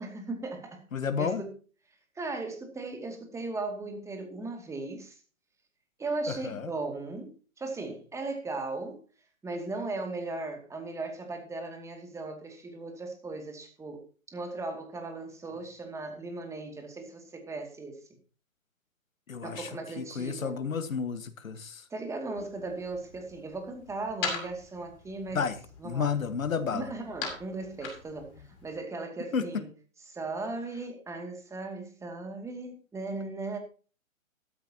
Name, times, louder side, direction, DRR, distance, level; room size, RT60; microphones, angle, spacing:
voice 1, 0.0-0.8 1.2-1.5 2.2-5.2 6.0-9.0 9.4-18.0 19.4-20.6 21.9-25.4 25.8-26.1 26.7-28.3 28.6-29.7 30.1-33.6, right 3 dB, 5° right, 2.4 m, -37 dB
voice 2, 0.9-1.4 6.3-6.7 19.3-19.7 20.0-21.8 25.3-25.6 25.8-26.9 29.3-29.5, left 6 dB, 75° left, 1.7 m, -31 dB
sound 1, 22.4-28.8, left 5 dB, 40° left, 6.0 m, -41 dB
13.5 x 13.0 x 2.9 m
hypercardioid pair, 135°, 41 cm